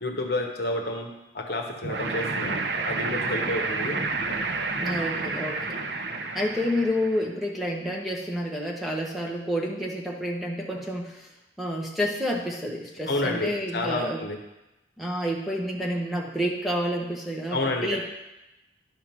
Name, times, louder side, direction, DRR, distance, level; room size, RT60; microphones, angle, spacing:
voice 1, 0.0-2.6 2.9-4.0 13.1-14.4 17.5-18.0, left 2 dB, 60° left, 3 dB, 1.0 m, -30 dB
sound 1, 1.8-7.3, right 3 dB, 60° right, 0.7 m, -30 dB
voice 2, 4.8-5.8 6.3-11.3 11.6-14.2 15.0-18.0, equal, ahead, -1 dB, 0.8 m, -29 dB
11.0 x 3.7 x 5.9 m, 0.98 s
head